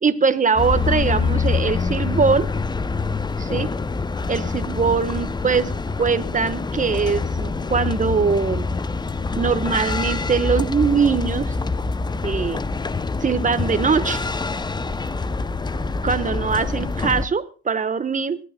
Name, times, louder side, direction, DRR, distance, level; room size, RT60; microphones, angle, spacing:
voice 1, 0.0-2.5 3.4-3.7 4.3-5.7 6.0-8.7 9.4-11.5 12.2-12.6 13.2-14.2 16.0-18.4, right 5 dB, 25° right, 12 dB, 1.3 m, -21 dB
sound 1, 0.6-17.3, left 4 dB, 15° left, 0.6 m, -25 dB
25.0 x 11.5 x 2.3 m, 0.36 s
hypercardioid pair, 65°, 31 cm